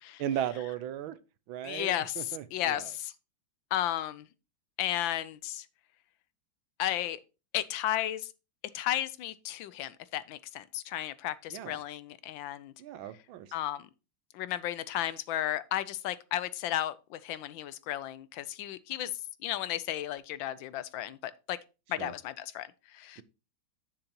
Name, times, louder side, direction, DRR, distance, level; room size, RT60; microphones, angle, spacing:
voice 1, 0.2-1.2 1.5-2.9 11.5-11.8 12.8-13.5 22.0-22.1, right 11 dB, 90° right, 1.5 m, -36 dB
voice 2, 1.6-3.1 3.7-4.3 4.8-5.6 6.8-7.2 7.5-8.3 8.7-12.7 13.5-13.9 14.3-19.1 19.4-21.6 21.9-23.2, left 13 dB, 80° left, 1.3 m, -34 dB
10.5 x 6.8 x 2.9 m
omnidirectional pair, 2.2 m